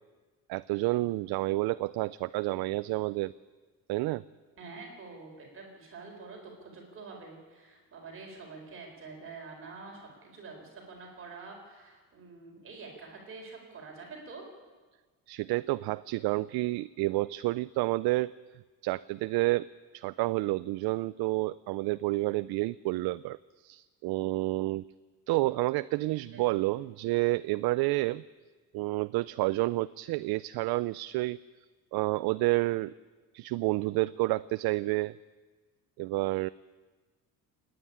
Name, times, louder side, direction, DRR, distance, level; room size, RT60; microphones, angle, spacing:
voice 1, 0.5-3.3 3.9-4.2 15.3-18.3 18.8-19.7 19.9-24.9 25.3-28.2 28.7-31.4 31.9-32.9 33.3-35.2 36.0-36.5, right 20 dB, 75° right, 15 dB, 0.5 m, -29 dB
voice 2, 4.6-14.4 26.3-26.5, right 4 dB, 35° right, 1 dB, 4.2 m, -47 dB
27.5 x 9.5 x 9.9 m, 1.4 s
cardioid pair, 160°, 38 cm